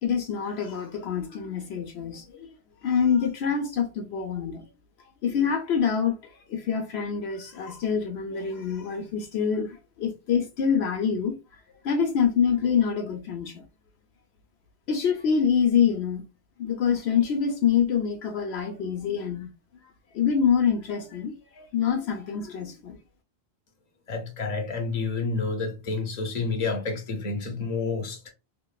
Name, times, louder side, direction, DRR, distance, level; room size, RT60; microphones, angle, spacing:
voice 1, 0.0-2.5 2.8-4.6 5.2-6.2 6.5-11.4 11.8-13.6 14.9-16.2 16.6-19.5 20.1-23.0, left 7 dB, 75° left, 0.9 m, -26 dB
voice 2, 24.1-28.2, left 4 dB, 40° left, 0.9 m, -29 dB
2.9 x 2.8 x 2.3 m
omnidirectional pair, 1.1 m